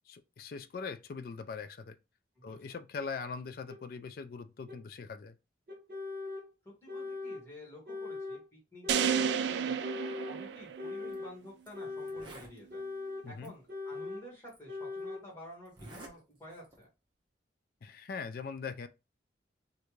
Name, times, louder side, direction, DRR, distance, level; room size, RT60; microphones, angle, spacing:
voice 1, 0.1-2.0 2.4-5.4 13.2-13.5 17.8-18.9, left 5 dB, 55° left, 0.3 m, -41 dB
voice 2, 2.3-2.7 6.6-12.9 13.3-16.9, left 1 dB, 15° left, 1.6 m, -51 dB
sound 1, 3.7-3.8 4.7-4.8 5.7-6.4 6.9-7.4 7.9-8.4 8.8-9.4 9.8-10.4 10.8-11.3 11.7-12.3 12.7-13.3 13.7-14.2 14.7-15.2, left 3 dB, 55° right, 1.4 m, -40 dB
sound 2, 8.9-11.2, right 8 dB, 70° right, 0.3 m, -31 dB
Zipper (clothing), 11.0-11.2 11.7-11.8 12.0-12.6 13.4-13.5 14.5-14.6 15.6-16.1 16.5-16.8, right 1 dB, 25° right, 1.0 m, -50 dB
3.3 x 2.6 x 3.1 m
head